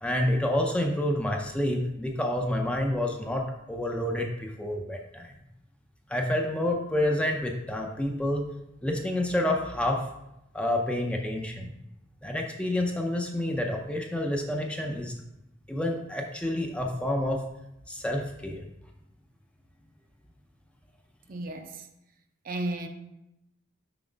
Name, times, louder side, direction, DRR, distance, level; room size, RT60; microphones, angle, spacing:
voice 1, 0.0-5.3 6.1-8.4 8.8-10.0 10.5-11.7 12.2-15.1 15.7-17.4 17.9-18.7, left 1 dB, 5° left, 1 dB, 0.5 m, -28 dB
voice 2, 21.3-21.7 22.5-22.9, right 1 dB, 45° right, 5 dB, 0.6 m, -32 dB
5.9 x 4.2 x 5.1 m, 0.88 s
head